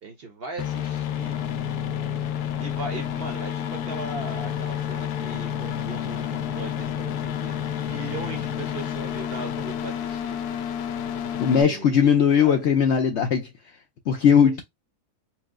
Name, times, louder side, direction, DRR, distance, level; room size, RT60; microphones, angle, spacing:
voice 1, 0.0-1.3 2.6-7.5 7.8-10.4 11.4-12.6 14.1-14.2, right 3 dB, 55° right, 0.7 m, -39 dB
sound 1, 0.6-11.6, left 9 dB, 85° left, 1.1 m, -30 dB
voice 2, 11.4-13.5 14.1-14.6, left 7 dB, 65° left, 0.7 m, -19 dB
4.6 x 2.0 x 3.6 m
omnidirectional pair, 1.6 m